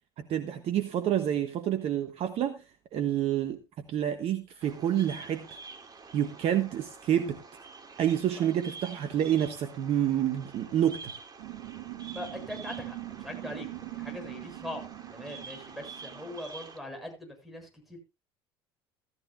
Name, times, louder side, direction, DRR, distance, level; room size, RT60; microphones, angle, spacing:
voice 1, 0.2-2.6 2.9-3.6 3.9-5.6 6.1-7.4 8.0-11.1, right 10 dB, 50° right, 9 dB, 1.3 m, -28 dB
Bird vocalization bird call bird song, 4.6-16.8, right 4 dB, 30° right, 2.5 m, -48 dB
sound 1, 11.4-16.4, right 18 dB, 70° right, 1.6 m, -42 dB
voice 2, 12.1-14.8 15.1-18.0, left 1 dB, ahead, 5 dB, 7.0 m, -41 dB
14.0 x 14.0 x 2.4 m, 0.26 s
hypercardioid pair, 70°, 13 cm